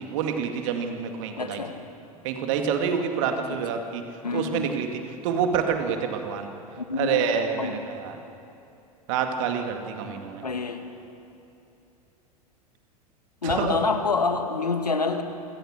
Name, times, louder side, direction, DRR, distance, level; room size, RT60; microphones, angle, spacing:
voice 1, 0.0-1.6 2.2-4.0 4.3-6.5 7.0-8.1 9.1-10.5 13.4-13.7, right 7 dB, 55° right, 5 dB, 2.3 m, -27 dB
voice 2, 1.4-1.8 3.7-3.8 4.2-4.7 6.8-7.2 7.6-7.8 10.4-10.8 13.4-15.2, left 4 dB, 80° left, 6 dB, 1.8 m, -27 dB
28.0 x 17.0 x 6.6 m, 2.8 s
figure-of-eight pair, 85°, 20 cm